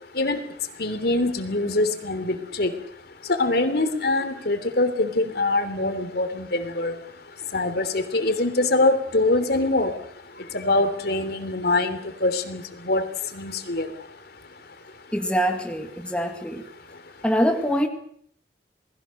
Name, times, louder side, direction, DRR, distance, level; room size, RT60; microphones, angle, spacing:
voice 1, 0.8-2.7 3.3-6.9 7.5-9.9 10.5-13.0 13.3-13.9, left 2 dB, 60° left, 3.2 m, -23 dB
voice 2, 15.1-16.6 17.2-17.9, equal, 5° left, 2.1 m, -24 dB
28.5 x 20.5 x 6.6 m
head